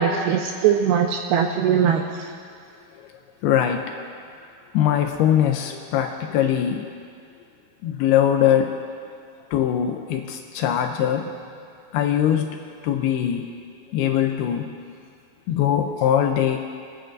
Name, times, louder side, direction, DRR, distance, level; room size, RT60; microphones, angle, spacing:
voice 1, 0.0-2.3, right 8 dB, 85° right, 3 dB, 2.3 m, -21 dB
voice 2, 3.4-4.1 4.7-6.9 7.8-8.8 9.5-11.3 11.9-13.5 13.9-14.7 15.5-16.6, left 10 dB, 80° left, 3 dB, 2.4 m, -21 dB
25.5 x 8.9 x 2.6 m, 2.4 s
omnidirectional pair, 4.8 m